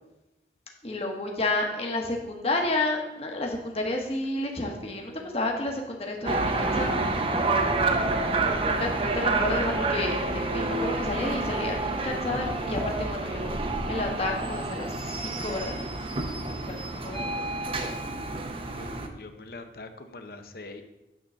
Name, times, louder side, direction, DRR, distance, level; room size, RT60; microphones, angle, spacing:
voice 1, 0.8-7.0 8.4-13.5 13.8-15.8 16.7-17.7, left 2 dB, 35° left, 1 dB, 1.3 m, -31 dB
sound 1, 6.3-19.1, right 2 dB, 30° right, 0.7 m, -28 dB
voice 2, 18.4-20.8, left 2 dB, 55° left, 7 dB, 0.8 m, -44 dB
9.4 x 3.9 x 7.0 m, 0.96 s
head